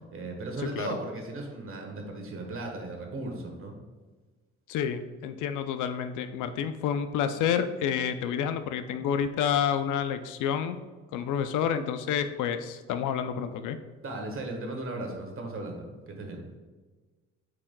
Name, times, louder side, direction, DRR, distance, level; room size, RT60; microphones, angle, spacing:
voice 1, 0.1-3.8 14.0-16.4, right 2 dB, 45° right, 2 dB, 1.4 m, -36 dB
voice 2, 4.7-10.8 11.1-13.8, left 8 dB, 85° left, 10 dB, 0.5 m, -29 dB
8.4 x 4.9 x 2.2 m, 1.3 s
cardioid pair, 90°, 30 cm